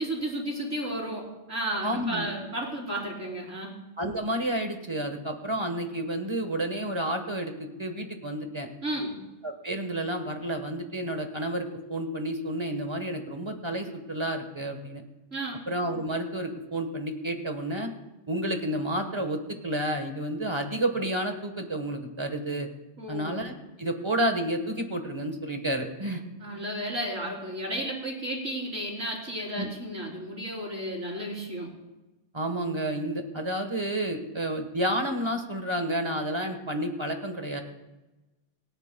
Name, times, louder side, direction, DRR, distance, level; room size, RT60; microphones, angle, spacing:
voice 1, 0.0-3.8 8.8-9.2 15.3-15.6 23.0-23.4 26.4-31.7, right 1 dB, 80° right, -3 dB, 3.9 m, -33 dB
voice 2, 1.8-2.3 4.0-8.7 9.4-15.0 15.7-17.9 18.3-22.7 23.1-26.2 29.5-29.7 32.3-37.6, right 1 dB, 25° right, 5 dB, 1.3 m, -30 dB
27.0 x 9.3 x 2.3 m, 1.1 s
omnidirectional pair, 1.3 m